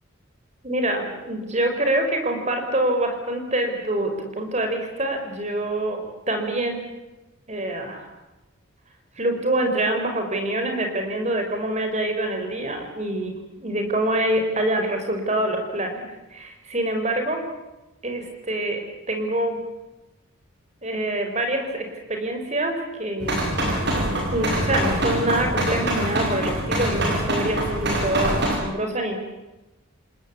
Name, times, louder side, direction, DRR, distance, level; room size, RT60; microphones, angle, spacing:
voice 1, 0.6-6.0 6.3-6.8 7.5-8.1 9.2-17.4 18.0-18.8 19.1-19.6 20.8-24.0 24.3-29.2, right 1 dB, 30° right, 5 dB, 5.0 m, -25 dB
sound 1, 23.2-28.6, right 1 dB, 50° right, 7.3 m, -24 dB
29.0 x 19.5 x 8.5 m, 1.0 s
head